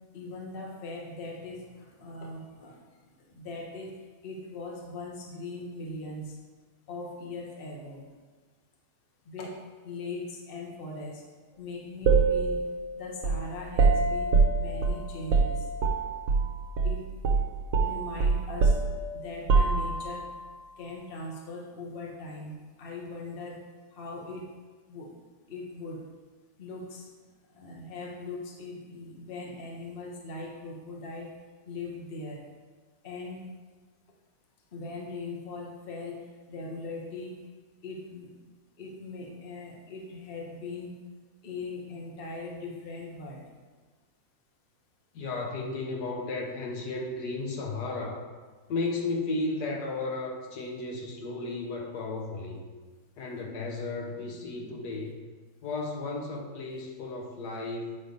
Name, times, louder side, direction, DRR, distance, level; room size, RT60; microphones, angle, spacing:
voice 1, 0.1-2.8 3.3-4.0 4.2-6.4 6.9-8.1 9.3-9.6 9.8-11.2 11.6-12.6 12.9-15.7 16.8-17.1 17.8-18.8 19.1-20.3 20.8-23.6 23.9-24.5 24.9-25.1 25.5-26.0 26.6-27.1 27.5-31.3 31.7-32.4 33.0-33.5 34.7-37.4 37.8-38.3 38.8-40.9 41.4-43.4, left 2 dB, 40° left, -1 dB, 1.1 m, -40 dB
sound 1, 12.1-16.5 16.8-17.0 17.2-20.2, right 4 dB, 60° right, 0.9 m, -25 dB
voice 2, 45.1-48.3 48.7-52.6 53.2-55.2 55.6-58.0, left 3 dB, 70° left, 1 dB, 1.3 m, -34 dB
8.7 x 3.3 x 5.2 m, 1.4 s
omnidirectional pair, 1.8 m